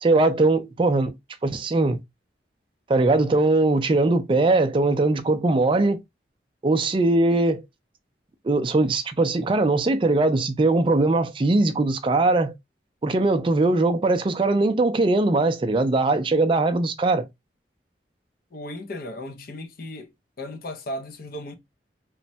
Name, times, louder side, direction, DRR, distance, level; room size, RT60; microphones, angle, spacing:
voice 1, 0.0-1.1 1.4-2.0 2.9-6.0 6.6-7.6 8.4-12.5 13.0-17.2, right 2 dB, 30° right, 0.3 m, -20 dB
voice 2, 18.5-20.1 20.4-21.5, left 1 dB, 55° left, 0.5 m, -35 dB
3.1 x 2.1 x 2.6 m
head